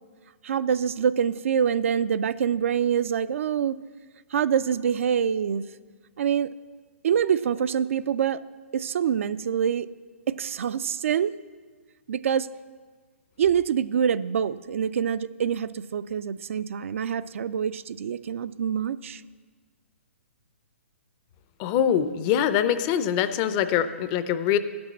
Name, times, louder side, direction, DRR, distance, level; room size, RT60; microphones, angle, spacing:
voice 1, 0.4-3.8 4.3-5.6 6.2-6.5 7.0-8.4 8.7-9.9 10.3-11.3 12.1-12.5 13.4-19.2, right 8 dB, 70° right, 15 dB, 0.3 m, -25 dB
voice 2, 21.6-24.6, left 9 dB, 30° left, 12 dB, 0.4 m, -23 dB
10.5 x 6.0 x 7.4 m, 1.5 s
hypercardioid pair, 150°, 7 cm